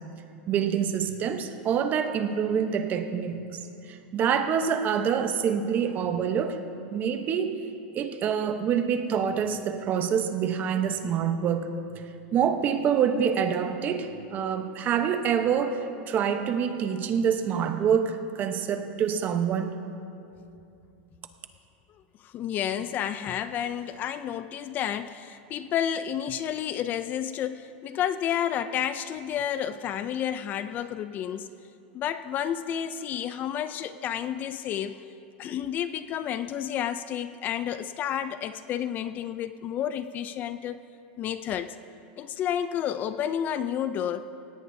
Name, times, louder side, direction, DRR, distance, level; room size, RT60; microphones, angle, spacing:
voice 1, 0.5-3.4 3.9-6.6 6.9-7.5 7.9-12.0 12.3-19.7, right 7 dB, 30° right, 7 dB, 0.9 m, -26 dB
voice 2, 22.2-31.5 31.9-35.0 35.4-40.8 41.2-41.8 42.2-44.3, left 9 dB, 30° left, 12 dB, 0.4 m, -30 dB
18.0 x 17.0 x 2.7 m, 2.6 s
supercardioid pair, 145°, 6 cm